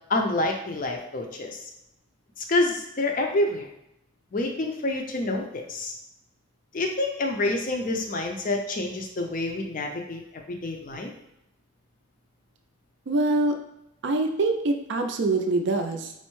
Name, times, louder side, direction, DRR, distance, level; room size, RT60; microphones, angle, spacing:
voice 1, 0.1-1.7 2.4-3.7 4.3-5.9 6.7-11.1, left 2 dB, 40° left, 2 dB, 0.4 m, -28 dB
voice 2, 13.1-13.6 14.0-16.1, right 2 dB, 55° right, 4 dB, 0.4 m, -24 dB
4.2 x 2.0 x 3.0 m, 0.81 s
head